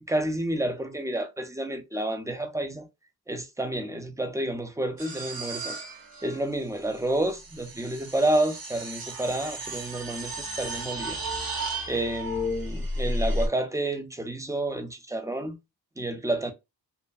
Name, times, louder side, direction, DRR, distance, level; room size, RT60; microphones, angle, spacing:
voice 1, 0.0-2.9 3.3-5.8 6.2-11.2 11.9-15.6 16.0-16.5, right 1 dB, 10° right, 0.3 m, -29 dB
sound 1, 5.0-13.5, equal, 55° right, 0.8 m, -33 dB
2.5 x 2.5 x 2.3 m
wide cardioid pair, 140°, 41 cm